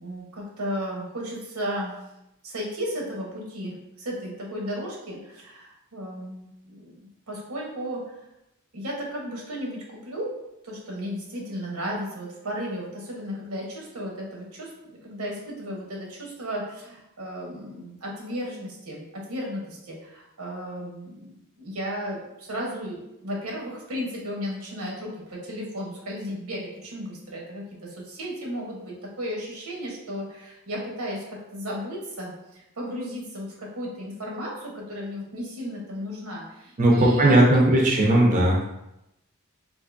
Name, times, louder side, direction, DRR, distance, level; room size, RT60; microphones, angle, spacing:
voice 1, 0.0-2.0 2.4-7.0 7.3-8.2 8.7-10.3 10.6-37.8, equal, 85° right, -2 dB, 0.9 m, -34 dB
voice 2, 36.8-38.7, right 1 dB, 35° right, -3 dB, 0.5 m, -18 dB
3.5 x 2.5 x 2.5 m, 0.88 s
head